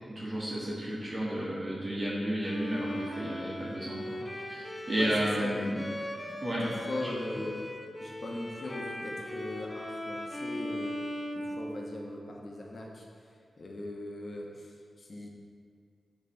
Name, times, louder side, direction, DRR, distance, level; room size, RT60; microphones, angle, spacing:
voice 1, 0.1-4.2 4.5-5.8 6.4-6.7, right 1 dB, 35° right, -8 dB, 1.6 m, -32 dB
Bowed string instrument, 2.4-12.3, left 1 dB, 15° left, 0.7 m, -39 dB
voice 2, 5.4-5.9 6.6-7.6 8.0-10.9 11.3-15.3, left 1 dB, 55° left, -1 dB, 1.2 m, -40 dB
8.0 x 3.4 x 5.8 m, 2.2 s
cardioid pair, 65°, 0 cm